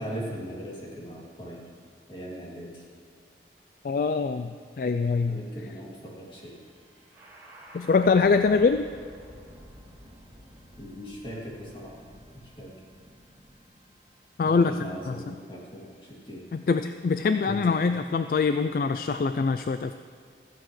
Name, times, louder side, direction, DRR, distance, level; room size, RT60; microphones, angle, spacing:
voice 1, 0.0-1.7 2.1-2.8 5.3-6.6 10.8-12.0 12.4-12.8 14.4-16.5 17.5-17.8, equal, 30° left, -4 dB, 2.6 m, -39 dB
voice 2, 3.8-5.4 7.7-8.8 14.4-14.7 15.1-15.2 16.5-19.9, left 4 dB, 50° left, 9 dB, 0.3 m, -24 dB
sound 1, 6.2-17.2, equal, 10° right, 3.0 m, -52 dB
16.5 x 14.0 x 3.2 m, 2.1 s
head